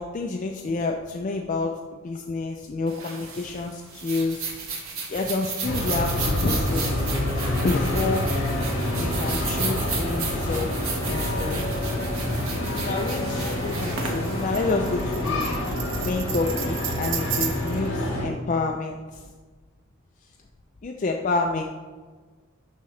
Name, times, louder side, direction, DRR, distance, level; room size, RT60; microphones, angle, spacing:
voice 1, 0.0-4.6 5.1-6.9 7.6-8.3 9.0-11.6 12.8-15.5 16.0-19.3 20.8-21.6, left 3 dB, 35° left, 2 dB, 0.4 m, -29 dB
sound 1, 2.9-15.3, right 4 dB, 80° right, 1.2 m, -34 dB
sound 2, 5.6-18.2, left 1 dB, 60° left, 1.9 m, -27 dB
Tambourine, 12.8-17.9, right 9 dB, 60° right, 0.6 m, -34 dB
11.0 x 3.7 x 3.2 m, 1.4 s
head